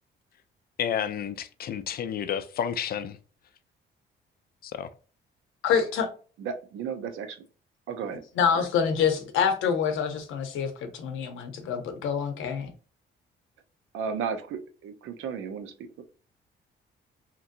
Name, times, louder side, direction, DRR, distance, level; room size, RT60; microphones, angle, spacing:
voice 1, 0.8-3.2 4.6-4.9, left 8 dB, 50° left, 0.4 m, -31 dB
voice 2, 5.6-6.1 8.4-12.7, left 7 dB, 85° left, 0.7 m, -26 dB
voice 3, 6.4-7.4 7.9-8.2 8.5-8.7 13.9-16.0, right 6 dB, 85° right, 0.5 m, -34 dB
2.9 x 2.6 x 2.5 m
cardioid pair, 90°, 20 cm